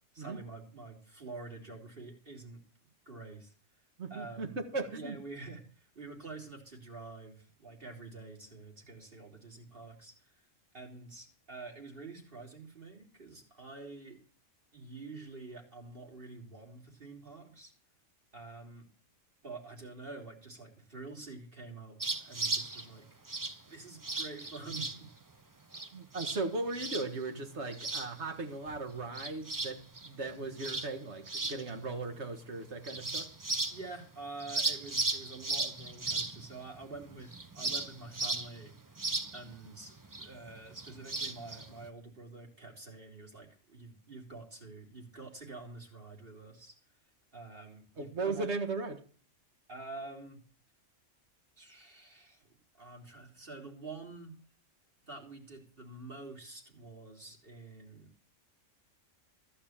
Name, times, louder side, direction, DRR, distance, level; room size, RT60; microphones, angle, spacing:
voice 1, 0.1-2.6 3.0-3.5 4.1-10.3 10.7-14.2 14.7-17.7 18.3-18.9 19.4-23.0 23.6-25.1 33.7-38.7 39.3-46.7 47.3-48.4 49.7-50.4 51.6-52.5 52.8-54.3 55.1-58.1, right 3 dB, 45° right, 0 dB, 3.5 m, -47 dB
voice 2, 4.0-5.2 25.9-33.3 48.0-49.0, right 3 dB, 60° right, 6 dB, 2.0 m, -37 dB
sound 1, 22.0-22.9 23.3-23.6 24.0-25.0 25.7-25.9 26.1-26.4 26.7-27.2 27.7-28.4 28.7-31.8 32.1-32.2 32.8-34.0 34.4-41.9, right 3 dB, 20° right, 0.7 m, -36 dB
15.0 x 5.5 x 8.8 m, 0.41 s
omnidirectional pair, 1.3 m